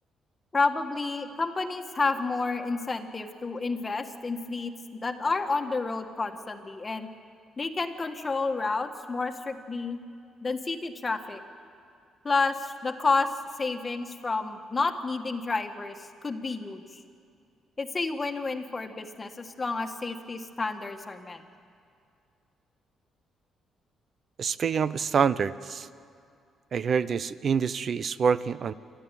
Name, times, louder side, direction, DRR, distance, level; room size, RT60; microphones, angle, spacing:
voice 1, 0.5-4.7 5.0-7.1 7.6-10.0 10.4-11.4 12.2-13.3 13.6-17.0 17.8-21.4, left 3 dB, 25° left, 5 dB, 1.7 m, -30 dB
voice 2, 24.4-25.9 26.7-28.7, right 6 dB, 50° right, 16 dB, 0.7 m, -26 dB
28.0 x 12.5 x 9.2 m, 2.4 s
cardioid pair, 90°, 0 cm